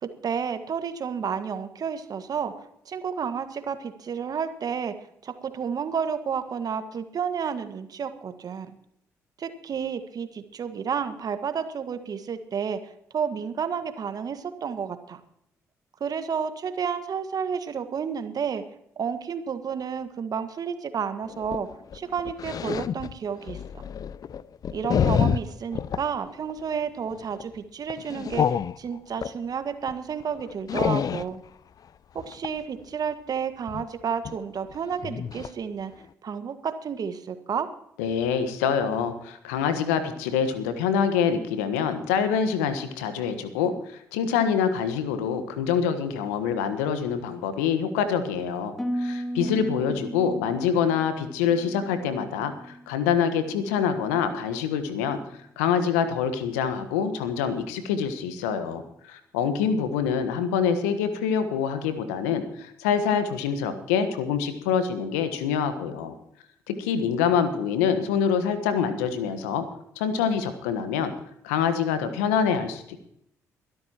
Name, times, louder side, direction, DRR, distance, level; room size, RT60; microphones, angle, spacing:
voice 1, 0.0-2.5 2.8-4.9 5.2-8.7 9.4-15.2 16.0-18.6 19.0-21.7 21.9-23.8 24.7-28.5 28.8-31.4 32.1-35.9 36.2-37.7 49.4-50.1, right 7 dB, 50° right, 9 dB, 1.7 m, -31 dB
sound 1, 21.3-26.1 26.5-26.8 27.1-27.4 27.9-29.4 29.9-30.0 30.2-31.4 32.2-32.6 33.7-33.9 34.3-34.4 34.7-34.8 35.0-35.5 35.9-36.1, left 8 dB, 50° left, 0.6 m, -28 dB
voice 2, 38.0-55.2 55.6-66.1 66.7-69.6 69.9-71.1 71.4-73.0, left 7 dB, 80° left, 10 dB, 1.4 m, -25 dB
Harp, 48.8-52.9 53.2-53.7 54.2-54.6, equal, 5° left, 1.8 m, -36 dB
23.0 x 12.5 x 3.0 m, 0.74 s
hypercardioid pair, 45°, 8 cm